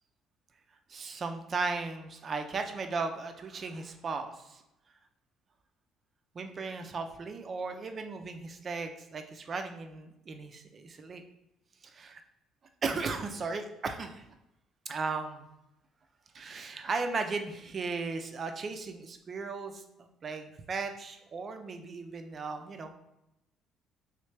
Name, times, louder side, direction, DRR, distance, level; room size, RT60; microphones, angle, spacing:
voice 1, 0.9-4.6 6.3-11.2 11.8-12.2 12.8-14.3 14.9-15.4 16.3-22.9, right 4 dB, 40° right, 6 dB, 0.5 m, -36 dB
3.2 x 3.2 x 3.2 m, 0.88 s
cardioid pair, 90°, 0 cm